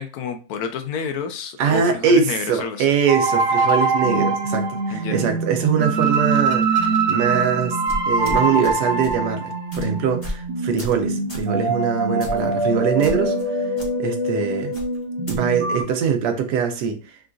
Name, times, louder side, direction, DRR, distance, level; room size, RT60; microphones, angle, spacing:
voice 1, 0.0-2.9 4.9-5.2, left 6 dB, 70° left, 1.0 m, -29 dB
voice 2, 1.6-7.8 8.1-13.7 14.0-14.8 15.3-17.2, right 7 dB, 90° right, 1.2 m, -22 dB
sound 1, 3.1-15.8, right 3 dB, 60° right, 0.7 m, -23 dB
sound 2, 7.9-8.7 9.0-9.2 9.7-9.9 10.2-10.4 10.8-11.0 11.3-11.5 12.2-12.5 13.0-13.5 13.8-13.9 14.7-15.4, left 1 dB, 25° left, 0.8 m, -33 dB
3.8 x 2.3 x 2.5 m
omnidirectional pair, 1.8 m